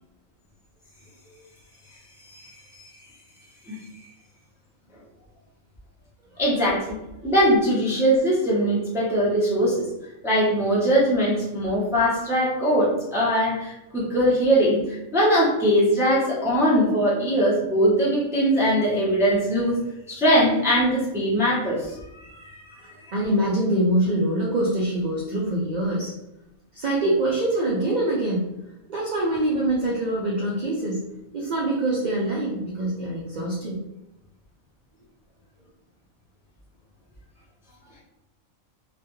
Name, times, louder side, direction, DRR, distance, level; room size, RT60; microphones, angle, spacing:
voice 1, 2.2-2.8 3.7-3.8 6.4-7.0 7.2-9.9 10.2-19.8 20.1-21.9 22.2-22.8, equal, 5° right, -6 dB, 0.5 m, -21 dB
voice 2, 23.1-26.1 26.7-28.5 28.9-31.1 31.3-33.8, right 1 dB, 85° right, -4 dB, 0.4 m, -24 dB
2.4 x 2.2 x 3.0 m, 0.93 s
omnidirectional pair, 1.4 m